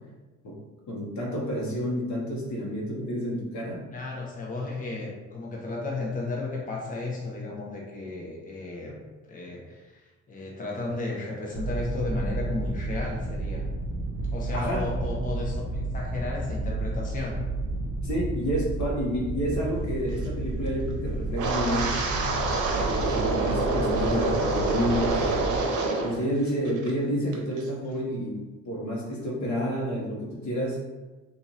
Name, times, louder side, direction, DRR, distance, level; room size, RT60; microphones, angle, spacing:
voice 1, 0.9-3.8 14.5-14.9 18.0-21.9 22.7-25.3 26.0-30.8, equal, 70° left, -3 dB, 1.2 m, -30 dB
voice 2, 3.9-13.6 14.3-15.6 15.9-17.4, left 3 dB, 25° left, -2 dB, 0.8 m, -34 dB
sound 1, 11.5-25.6, right 2 dB, 40° right, 0.7 m, -31 dB
Wind, 21.3-26.2 26.5-26.9 27.3-27.6, right 3 dB, 80° right, 0.7 m, -27 dB
3.0 x 2.6 x 3.9 m, 1.2 s
cardioid pair, 90°, 30 cm